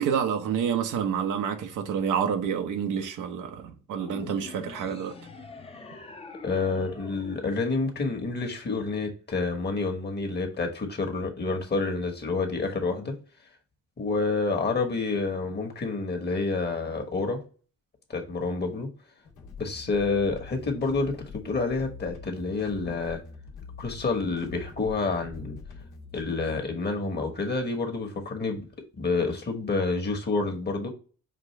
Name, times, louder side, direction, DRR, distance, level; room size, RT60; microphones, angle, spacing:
voice 1, 0.0-5.1, right 7 dB, 85° right, 0.9 m, -28 dB
sound 1, 4.0-8.5, left 3 dB, 20° left, 0.7 m, -45 dB
voice 2, 6.4-13.1 14.0-17.4 18.1-18.9 19.6-23.2 23.8-25.6 26.1-28.6 29.0-30.9, left 3 dB, 35° left, 1.2 m, -28 dB
sound 2, 19.2-26.2, left 5 dB, 85° left, 1.2 m, -44 dB
5.3 x 2.5 x 3.1 m
cardioid pair, 90°, 30 cm